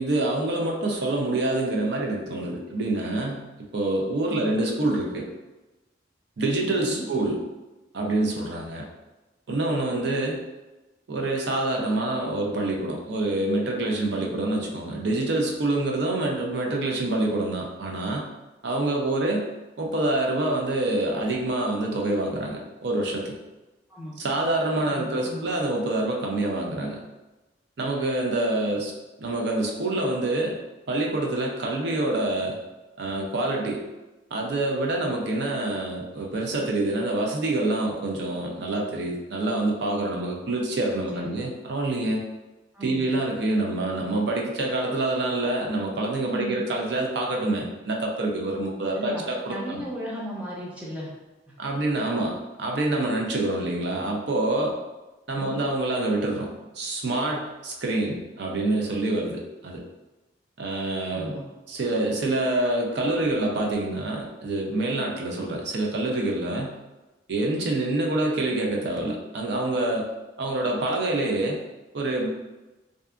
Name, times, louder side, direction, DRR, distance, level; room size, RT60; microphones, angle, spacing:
voice 1, 0.0-3.4 3.7-5.3 6.4-7.4 7.9-8.9 9.5-10.4 11.1-18.3 18.6-19.5 19.8-23.4 24.2-27.0 27.8-28.9 29.2-30.6 30.9-32.6 33.0-33.8 34.3-42.2 42.8-49.8 51.6-54.8 55.3-59.8 60.6-61.3 61.7-66.8 67.3-70.1 70.4-71.6 71.9-72.3, right 2 dB, 70° right, -1 dB, 0.5 m, -26 dB
voice 2, 4.2-4.6 6.9-7.1 23.9-24.1 24.8-25.5 41.1-41.4 42.7-43.0 46.2-46.6 48.9-51.1 51.5-51.6 55.3-55.6 61.1-61.5, equal, 5° right, -5 dB, 0.5 m, -36 dB
2.6 x 2.4 x 2.3 m, 1.1 s
head